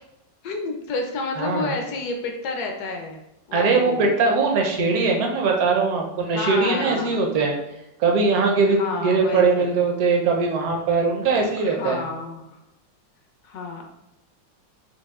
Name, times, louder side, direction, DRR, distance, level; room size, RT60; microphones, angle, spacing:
voice 1, 0.4-3.2 3.5-4.2 6.3-7.3 8.7-9.8 11.6-12.6 13.4-13.9, left 3 dB, 75° left, 3 dB, 0.9 m, -30 dB
voice 2, 1.4-1.7 3.5-7.6 8.0-12.0, right 4 dB, 65° right, 1 dB, 1.0 m, -21 dB
5.4 x 2.3 x 2.3 m, 0.89 s
omnidirectional pair, 2.1 m